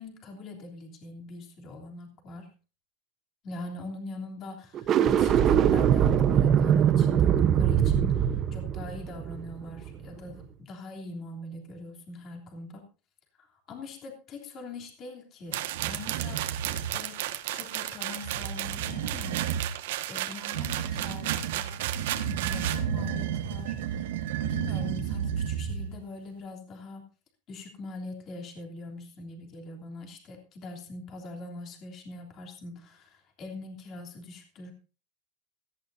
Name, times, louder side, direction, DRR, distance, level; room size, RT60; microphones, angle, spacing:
voice 1, 0.0-2.5 3.4-12.8 13.4-19.4 20.1-21.8 22.1-27.1 27.5-34.7, left 2 dB, 30° left, 2 dB, 3.2 m, -43 dB
sound 1, 4.7-10.0, right 9 dB, 25° right, 0.9 m, -22 dB
sound 2, 15.5-22.8, right 14 dB, 70° right, 1.6 m, -34 dB
sound 3, 15.7-17.0 18.1-19.7 20.5-26.0, right 9 dB, 85° right, 1.7 m, -32 dB
17.0 x 15.0 x 2.7 m, 0.33 s
supercardioid pair, 170°, 0 cm